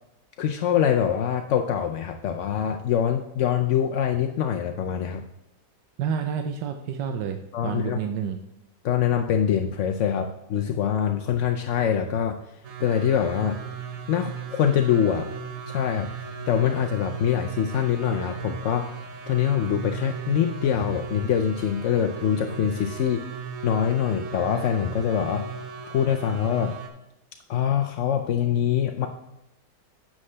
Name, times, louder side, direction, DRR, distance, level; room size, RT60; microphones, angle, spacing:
voice 1, 0.4-5.3 7.5-8.0 8.8-12.4 12.8-13.6 14.1-15.3 15.7-16.1 16.5-18.9 19.3-23.3 23.6-25.5 25.9-26.7 27.5-29.1, left 9 dB, 70° left, 5 dB, 0.7 m, -24 dB
voice 2, 6.0-8.4, right 7 dB, 85° right, 5 dB, 1.4 m, -29 dB
sound 1, 12.6-26.9, right 6 dB, 55° right, 1.3 m, -37 dB
9.7 x 7.5 x 3.3 m, 0.90 s
omnidirectional pair, 1.9 m